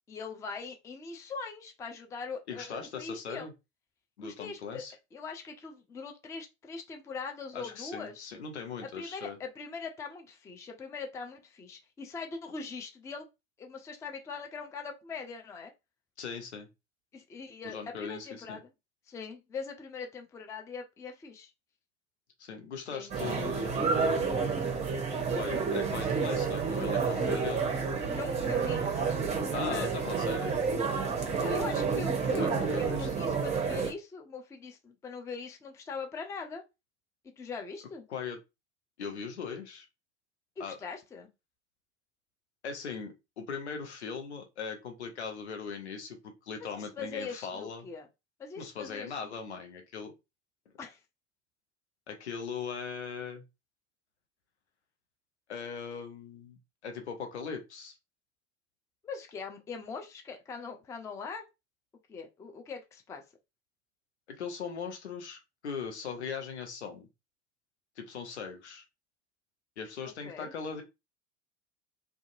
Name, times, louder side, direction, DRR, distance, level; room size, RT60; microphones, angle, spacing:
voice 1, 0.1-3.5 4.2-4.8 5.1-8.3 8.9-13.3 13.6-15.7 17.1-18.7 19.1-21.5 22.9-23.2 28.0-29.2 29.7-29.9 31.4-36.6 37.4-38.0 40.6-41.3 46.6-48.1 48.4-49.3 50.8-51.0 59.0-61.4 62.1-63.2 70.2-70.5, left 4 dB, 10° left, 0.3 m, -41 dB
voice 2, 2.5-3.5 4.2-4.9 7.5-9.4 16.2-16.7 17.6-18.6 22.4-24.6 25.3-27.7 29.5-30.7 32.3-33.1 38.1-38.4 39.0-39.9 40.6-40.8 42.6-47.9 48.6-50.1 52.1-53.4 55.5-58.0 64.3-67.1 68.0-68.8 69.8-70.8, left 6 dB, 75° left, 0.8 m, -39 dB
sound 1, 23.1-33.9, right 5 dB, 20° right, 0.7 m, -30 dB
2.5 x 2.4 x 2.5 m
figure-of-eight pair, 75°, 34 cm